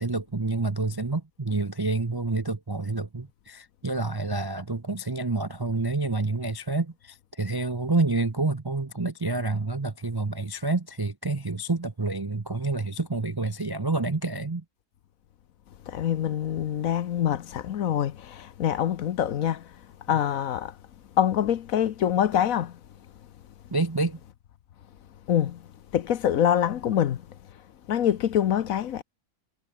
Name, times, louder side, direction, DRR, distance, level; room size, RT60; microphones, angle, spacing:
voice 1, 0.0-14.6 23.7-24.2, right 3 dB, 30° right, 0.4 m, -28 dB
voice 2, 15.9-19.6 20.1-20.7 21.2-22.7 25.3-25.6 25.9-27.2 27.9-29.0, left 10 dB, 60° left, 1.1 m, -25 dB
omnidirectional pair, 1.7 m